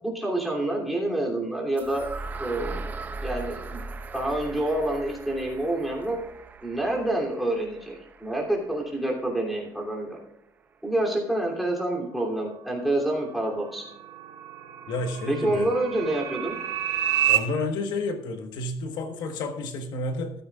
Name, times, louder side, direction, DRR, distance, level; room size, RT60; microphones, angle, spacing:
voice 1, 0.0-2.1 2.4-2.8 3.2-3.8 4.1-6.2 6.6-10.2 10.8-13.8 15.3-16.6, right 1 dB, ahead, -2 dB, 2.9 m, -27 dB
sound 1, 1.8-9.7, right 3 dB, 20° right, 0.7 m, -39 dB
sound 2, 13.1-17.4, right 12 dB, 80° right, 2.7 m, -29 dB
voice 2, 14.9-15.7 17.3-20.3, left 2 dB, 65° left, 6 dB, 1.4 m, -30 dB
14.5 x 13.0 x 2.4 m, 0.78 s
cardioid pair, 175°, 8 cm